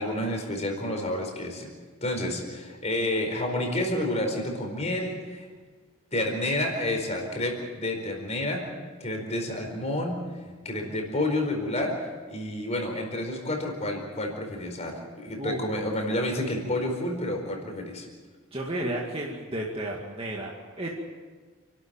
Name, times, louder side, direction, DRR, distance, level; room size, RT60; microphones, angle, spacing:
voice 1, 0.0-1.7 2.0-5.5 6.1-8.7 9.0-10.2 10.6-12.0 12.3-18.1, left 1 dB, 30° left, 2 dB, 4.6 m, -29 dB
voice 2, 18.5-20.9, right 1 dB, 25° right, -3 dB, 2.1 m, -32 dB
29.5 x 12.5 x 9.0 m, 1.5 s
head